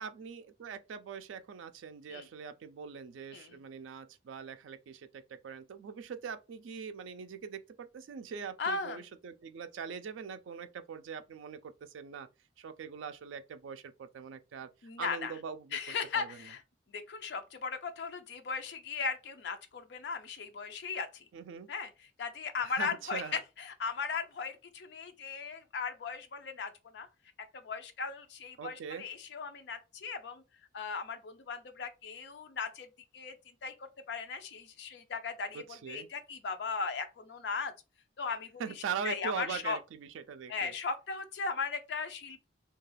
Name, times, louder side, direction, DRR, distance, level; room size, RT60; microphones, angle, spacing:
voice 1, 0.0-12.3 12.6-14.7 15.0-15.8 16.1-16.3 21.3-21.7 22.7-23.4 28.6-29.0 35.5-36.1 38.6-40.7, right 6 dB, 80° right, 0.3 m, -42 dB
voice 2, 8.6-9.0 14.8-15.3 15.7-16.6 16.9-21.2 21.7-27.1 27.6-30.4 30.7-32.9 33.1-33.3 33.6-33.7 34.1-37.7 38.2-38.6 39.0-39.8 40.5-42.5, left 5 dB, 60° left, 0.4 m, -37 dB
2.3 x 2.3 x 3.2 m
head